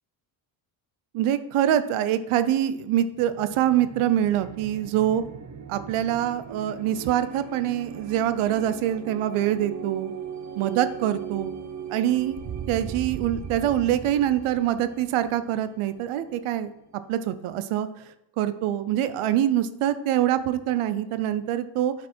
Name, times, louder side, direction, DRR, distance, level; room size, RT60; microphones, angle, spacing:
voice 1, 1.1-5.2 5.7-10.1 10.6-11.5 11.9-12.4 12.7-16.7 17.1-18.0 18.4-21.9, right 11 dB, 85° right, 12 dB, 0.7 m, -24 dB
sound 1, 3.1-16.6, right 7 dB, 35° right, 0.8 m, -39 dB
8.3 x 5.1 x 4.4 m, 0.85 s
cardioid pair, 105°, 49 cm